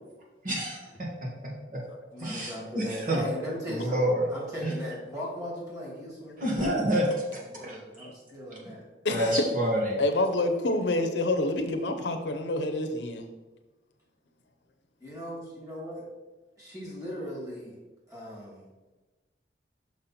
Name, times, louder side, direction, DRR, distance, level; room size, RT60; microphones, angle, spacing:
voice 1, 0.4-0.8 2.2-3.2 3.7-4.3 4.6-4.7 6.4-7.8 9.1-10.0, right 1 dB, 50° right, -2 dB, 1.7 m, -28 dB
voice 2, 2.1-6.4 7.3-8.9 15.0-16.0 16.6-17.8 18.1-18.6, equal, 20° right, -5 dB, 2.4 m, -38 dB
voice 3, 9.0-9.5 10.0-13.2, left 2 dB, 80° left, 6 dB, 0.8 m, -27 dB
6.1 x 5.6 x 4.2 m, 1.2 s
head